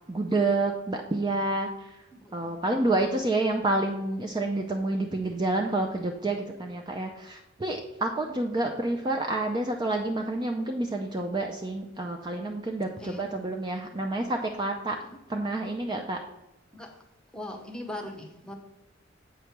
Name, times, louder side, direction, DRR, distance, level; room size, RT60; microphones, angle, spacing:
voice 1, 0.1-2.0 2.3-15.0 15.3-16.2, right 2 dB, 25° right, 2 dB, 0.5 m, -29 dB
voice 2, 2.1-2.5 2.8-3.2 13.0-13.3 15.0-15.2 16.7-16.9 17.3-18.5, left 1 dB, 5° left, 2 dB, 0.9 m, -40 dB
8.0 x 3.2 x 5.8 m, 0.94 s
head